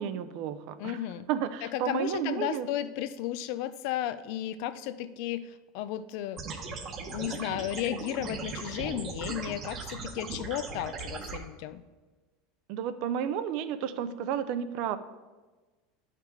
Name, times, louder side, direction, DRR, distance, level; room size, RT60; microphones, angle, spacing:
voice 1, 0.0-1.0 1.3-2.7 12.7-15.0, right 9 dB, 50° right, 12 dB, 0.5 m, -32 dB
voice 2, 0.8-1.3 1.6-6.4 7.0-11.8, left 12 dB, 55° left, 14 dB, 0.5 m, -34 dB
sound 1, 6.4-11.4, right 4 dB, 30° right, 1.0 m, -38 dB
10.5 x 5.8 x 4.5 m, 1.3 s
supercardioid pair, 160°, 0 cm